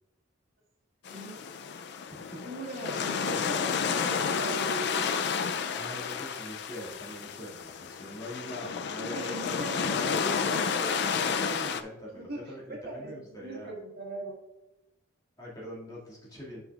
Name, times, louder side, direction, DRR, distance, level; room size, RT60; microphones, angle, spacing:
sound 1, 1.1-11.8, left 6 dB, 55° left, 0.4 m, -31 dB
voice 1, 1.1-1.4 2.4-5.2 9.0-11.2 12.1-14.4, right 1 dB, 50° right, -2 dB, 1.9 m, -40 dB
voice 2, 5.7-9.5 11.0-13.7 15.4-16.6, equal, 20° left, -6 dB, 2.1 m, -43 dB
9.8 x 5.7 x 2.4 m, 0.96 s
head